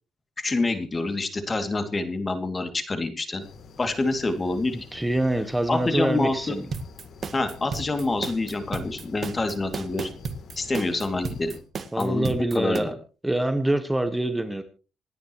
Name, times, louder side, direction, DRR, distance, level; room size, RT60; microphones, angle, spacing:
voice 1, 0.4-3.5 3.8-4.8 5.7-6.6 7.3-10.1 10.6-11.5 11.9-12.9, left 2 dB, 30° left, 7 dB, 2.7 m, -27 dB
sound 1, 3.4-11.6, left 5 dB, 65° left, 3.2 m, -47 dB
voice 2, 4.9-6.7 11.9-12.9 13.2-14.6, right 1 dB, 10° right, 8 dB, 1.4 m, -25 dB
sound 2, 6.7-12.8, right 5 dB, 50° right, 1.8 m, -34 dB
27.0 x 10.0 x 3.2 m, 0.35 s
cardioid pair, 90°, 0 cm